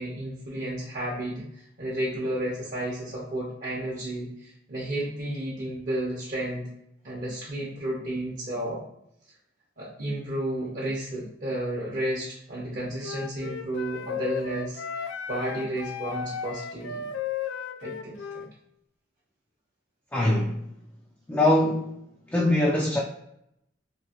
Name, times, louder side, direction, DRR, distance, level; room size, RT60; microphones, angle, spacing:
voice 1, 0.0-6.7 7.0-8.8 9.8-17.1 17.8-18.4, right 1 dB, 45° right, -5 dB, 0.8 m, -32 dB
Wind instrument woodwind instrument, 13.0-18.5, left 7 dB, 85° left, 0.3 m, -34 dB
voice 2, 20.1-20.6 21.3-22.0 22.3-23.0, left 1 dB, 10° left, -4 dB, 0.4 m, -22 dB
2.9 x 2.8 x 2.8 m, 0.78 s
head